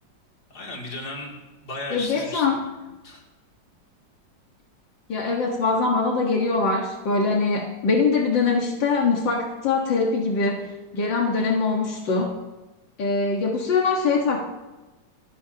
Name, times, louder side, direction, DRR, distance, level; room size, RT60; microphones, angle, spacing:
voice 1, 0.5-2.6 3.0-3.2, left 2 dB, 60° left, -1 dB, 3.3 m, -35 dB
voice 2, 1.9-2.6 5.1-12.4 13.0-14.4, left 4 dB, 85° left, -1 dB, 2.2 m, -23 dB
28.5 x 14.0 x 2.9 m, 1.1 s
omnidirectional pair, 2.0 m